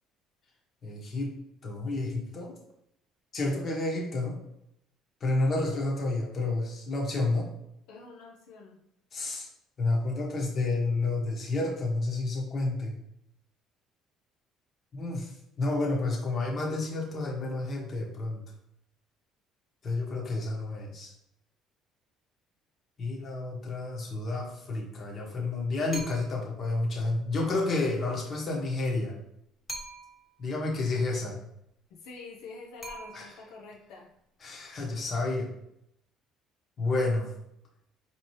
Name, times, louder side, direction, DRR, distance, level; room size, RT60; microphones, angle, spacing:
voice 1, 0.8-1.3 1.6-2.5 3.3-4.3 5.2-7.5 9.1-9.5 9.8-13.0 14.9-18.4 19.8-21.1 23.0-29.2 30.4-31.4 33.1-33.3 34.4-35.5 36.8-37.3, left 2 dB, 40° left, -2 dB, 1.2 m, -30 dB
voice 2, 7.9-8.8 31.9-34.1, left 4 dB, 80° left, -1 dB, 0.6 m, -47 dB
sound 1, 25.9-26.5 29.7-30.4 32.8-33.6, right 2 dB, 15° left, 0.9 m, -42 dB
4.4 x 3.0 x 3.1 m, 0.78 s
cardioid pair, 105°, 0 cm